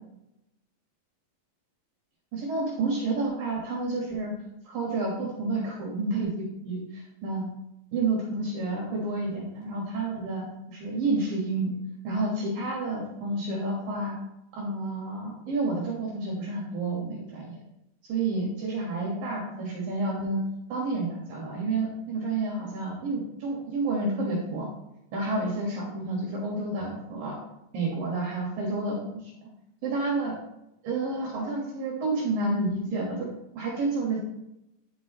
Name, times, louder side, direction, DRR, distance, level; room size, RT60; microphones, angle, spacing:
voice 1, 2.3-4.3 4.7-7.5 7.9-11.7 12.0-14.1 14.5-17.6 18.1-20.4 20.7-24.7 25.1-27.4 27.7-29.0 29.4-29.5 29.8-30.3 30.8-33.3 33.6-34.2, right 2 dB, 60° right, -3 dB, 2.8 m, -30 dB
10.5 x 6.1 x 3.0 m, 0.88 s
omnidirectional pair, 5.3 m